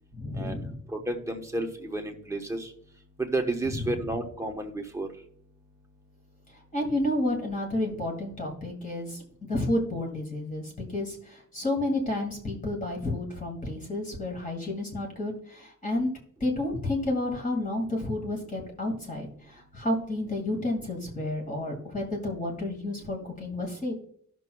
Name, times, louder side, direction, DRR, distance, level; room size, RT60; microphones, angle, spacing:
voice 1, 0.1-0.8 3.7-3.9 6.7-16.1 16.4-23.9, left 1 dB, 25° left, 1 dB, 2.1 m, -31 dB
voice 2, 0.9-2.7 3.2-5.1, right 2 dB, 10° right, 2 dB, 1.0 m, -31 dB
17.5 x 6.2 x 2.3 m, 0.64 s
wide cardioid pair, 170°, 32 cm